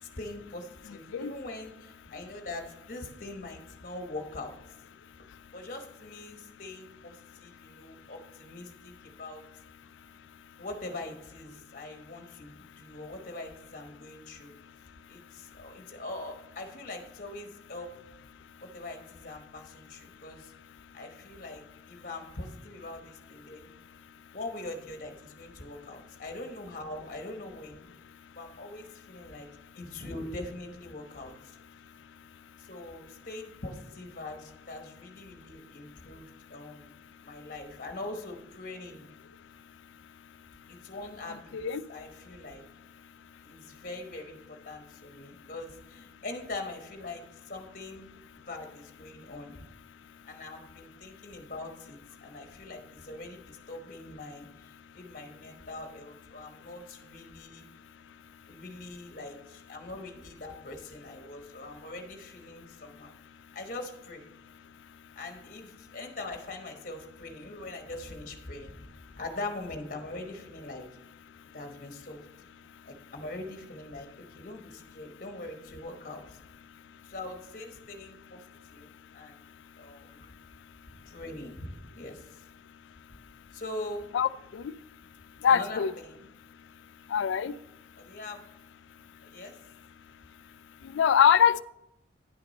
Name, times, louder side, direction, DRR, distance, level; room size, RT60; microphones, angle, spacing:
voice 1, 0.2-4.6 5.5-9.4 10.6-14.5 15.1-18.0 18.6-20.5 20.9-23.7 24.3-27.9 28.3-29.5 29.7-31.3 32.6-36.9 37.2-39.1 40.7-41.6 41.9-42.6 43.4-48.1 48.5-49.6 50.3-57.6 58.5-63.1 63.5-64.2 65.2-70.9 71.5-72.3 72.8-76.4 77.0-78.4 78.7-78.9 79.1-79.5 79.8-80.3 80.9-82.4 83.5-84.1 85.4-86.3 88.0-88.4 89.2-89.6, left 2 dB, 45° left, 4 dB, 1.1 m, -42 dB
voice 2, 84.1-84.6 85.4-85.9 87.1-87.5 90.9-91.6, left 8 dB, 85° left, 17 dB, 0.3 m, -23 dB
10.0 x 6.0 x 4.2 m, 0.81 s
head